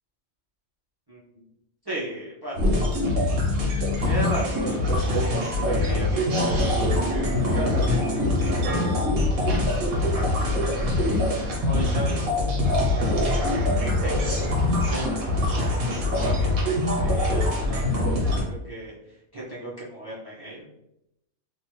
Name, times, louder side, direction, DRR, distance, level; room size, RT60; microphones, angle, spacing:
voice 1, 1.9-2.7 4.0-6.5 7.1-7.2 7.5-8.9 9.6-11.1 11.7-12.3 13.2-15.4 15.9-18.9 19.3-20.6, right 1 dB, 40° right, -7 dB, 0.3 m, -36 dB
sound 1, 2.6-18.4, left 1 dB, 85° right, 1.3 m, -23 dB
2.9 x 2.2 x 3.0 m, 0.83 s
omnidirectional pair, 1.4 m